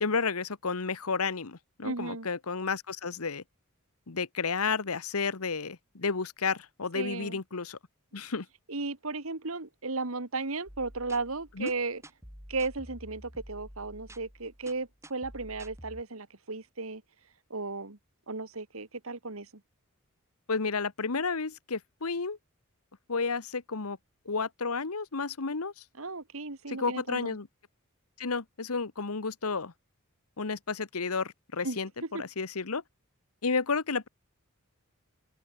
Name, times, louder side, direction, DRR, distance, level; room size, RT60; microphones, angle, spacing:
voice 1, 0.0-3.4 4.1-7.8 8.1-8.5 11.6-11.7 20.5-22.4 23.1-24.0 24.2-25.8 26.7-27.5 28.2-29.7 30.4-32.8 33.4-34.1, left 4 dB, 85° left, 1.2 m, -31 dB
voice 2, 1.8-2.3 6.9-7.4 8.7-12.0 12.5-17.0 17.5-18.0 18.3-19.5 26.0-27.3 31.6-31.8 32.1-32.2, right 3 dB, 70° right, 2.0 m, -35 dB
sound 1, 10.7-16.0, equal, 15° right, 6.2 m, -49 dB
head